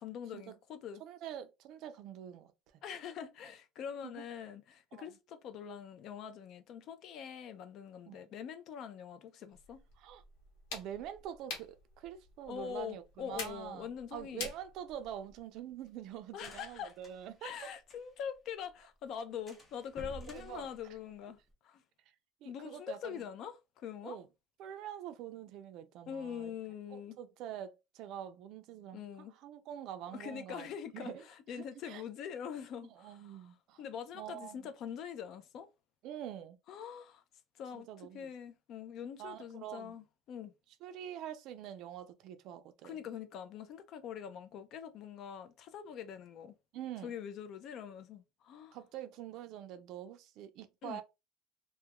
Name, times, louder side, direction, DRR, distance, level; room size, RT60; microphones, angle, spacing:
voice 1, 0.0-1.0 2.8-9.8 12.5-14.5 16.3-16.9 17.4-21.4 21.6-21.8 22.4-24.2 26.1-27.2 28.9-29.3 30.1-31.1 31.5-35.7 36.7-37.2 37.6-37.9 38.1-40.5 42.8-46.5 47.0-48.8 50.8-51.0, left 8 dB, 45° left, 0.4 m, -44 dB
voice 2, 1.0-2.8 4.1-4.2 4.9-5.1 8.1-8.2 10.0-10.2 10.7-17.7 20.3-20.7 22.4-23.2 24.0-24.3 24.6-26.5 26.9-30.7 30.9-31.2 31.5-32.0 32.9-33.8 34.1-34.7 36.0-36.6 37.7-38.3 39.2-40.0 40.8-43.0 46.7-47.1 48.7-51.0, right 10 dB, 55° right, 0.4 m, -45 dB
sound 1, 9.5-15.4, left 4 dB, 85° left, 1.0 m, -48 dB
sound 2, 14.9-18.4 18.6-18.7 19.0-19.2 19.5-21.5, right 1 dB, 15° left, 0.7 m, -53 dB
2.3 x 2.1 x 2.8 m
cardioid pair, 155°, 0 cm